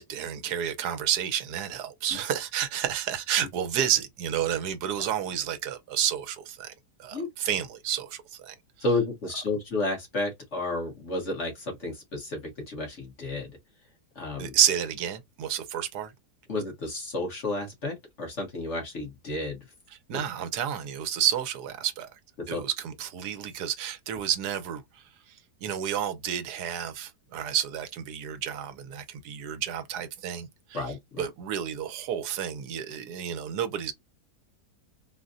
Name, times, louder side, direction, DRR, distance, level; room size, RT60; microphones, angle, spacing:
voice 1, 0.0-6.7 7.0-8.5 14.4-16.1 20.1-22.1 22.5-24.8 25.6-30.8 31.2-33.9, right 9 dB, 80° right, 1.2 m, -30 dB
voice 2, 8.8-13.5 14.1-14.5 16.5-19.6 20.1-20.2 22.5-22.6 30.7-31.3, left 2 dB, 50° left, 1.4 m, -31 dB
3.9 x 2.1 x 2.4 m
omnidirectional pair, 1.7 m